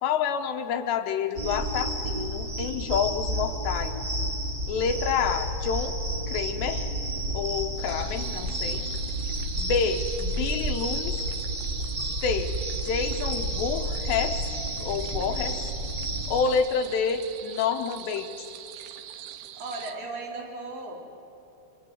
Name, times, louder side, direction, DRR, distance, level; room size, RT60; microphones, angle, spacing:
voice 1, 0.0-4.0 4.7-5.9 6.3-6.9 7.3-8.8 9.6-11.2 12.2-12.5 12.8-14.4 14.8-15.6 16.3-18.5, left 6 dB, 80° left, 6 dB, 3.2 m, -28 dB
sound 1, 1.4-16.4, right 1 dB, 25° right, 3.2 m, -31 dB
sound 2, 7.8-19.9, right 11 dB, 85° right, 3.3 m, -43 dB
voice 2, 19.3-21.0, right 2 dB, 60° right, -2 dB, 5.9 m, -37 dB
28.5 x 26.0 x 8.1 m, 2.8 s
omnidirectional pair, 5.1 m